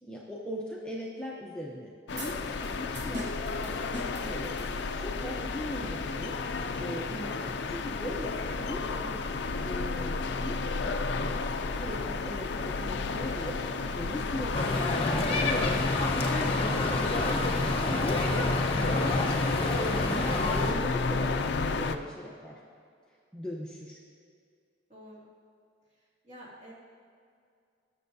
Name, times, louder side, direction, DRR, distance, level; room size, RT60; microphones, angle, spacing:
voice 1, 0.0-3.3 3.6-6.4 6.8-9.3 9.6-11.4 11.8-15.8 16.1-18.5 18.8-21.4 21.8-22.6 23.3-24.0, equal, 5° left, -4 dB, 0.7 m, -39 dB
sound 1, 2.1-22.0, left 4 dB, 60° left, 0.5 m, -32 dB
sound 2, 2.2-5.2, equal, 60° right, 1.3 m, -43 dB
voice 2, 8.4-8.8 24.9-25.3 26.2-26.7, equal, 35° right, -6 dB, 2.4 m, -50 dB
sound 3, 14.5-20.7, left 2 dB, 30° left, 0.9 m, -28 dB
19.0 x 6.9 x 2.7 m, 2.3 s
head